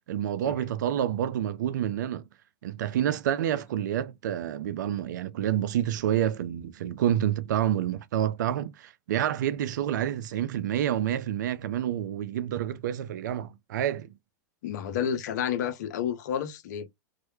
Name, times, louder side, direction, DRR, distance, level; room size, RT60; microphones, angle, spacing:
voice 1, 0.1-2.2 2.6-14.1, right 11 dB, 75° right, 0.4 m, -28 dB
voice 2, 14.6-16.9, left 8 dB, 70° left, 0.5 m, -30 dB
2.1 x 2.1 x 3.0 m
hypercardioid pair, 100°, 10 cm